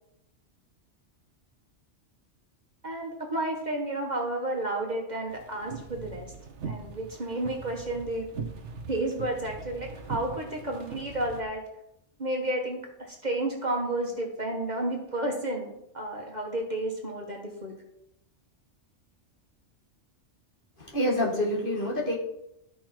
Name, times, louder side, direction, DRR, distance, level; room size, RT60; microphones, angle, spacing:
voice 1, 2.8-6.3 6.6-8.3 8.9-11.6 12.2-17.7, right 1 dB, 40° right, 0 dB, 1.6 m, -31 dB
sound 1, 5.3-11.4, right 5 dB, 75° right, 1.3 m, -40 dB
voice 2, 20.8-22.2, left 1 dB, 45° left, -3 dB, 2.4 m, -27 dB
13.0 x 5.5 x 4.5 m, 0.81 s
omnidirectional pair, 1.2 m